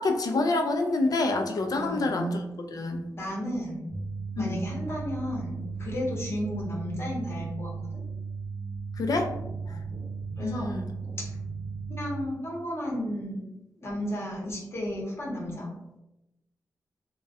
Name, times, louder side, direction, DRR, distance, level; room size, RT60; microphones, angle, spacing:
voice 1, 0.0-2.4 2.7-3.1 4.4-4.6 9.0-9.3 10.4-10.9, left 2 dB, 65° left, 4 dB, 0.3 m, -27 dB
voice 2, 1.7-2.2 3.2-3.8 4.4-8.0 9.7-9.8 10.4-10.8 11.9-13.4 13.8-15.7, equal, 35° left, -4 dB, 0.8 m, -33 dB
sound 1, 3.9-12.2, right 4 dB, 75° right, 0.7 m, -36 dB
2.1 x 2.1 x 2.7 m, 0.93 s
wide cardioid pair, 100°, 7 cm